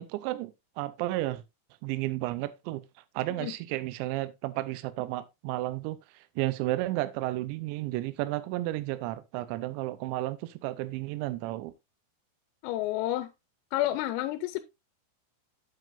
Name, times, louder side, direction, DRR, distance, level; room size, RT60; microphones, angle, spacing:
voice 1, 0.0-1.4 1.8-2.8 3.1-11.7, right 17 dB, 90° right, 2.6 m, -32 dB
voice 2, 12.6-13.3 13.7-14.6, left 15 dB, 85° left, 3.3 m, -30 dB
8.9 x 8.0 x 2.6 m
omnidirectional pair, 6.0 m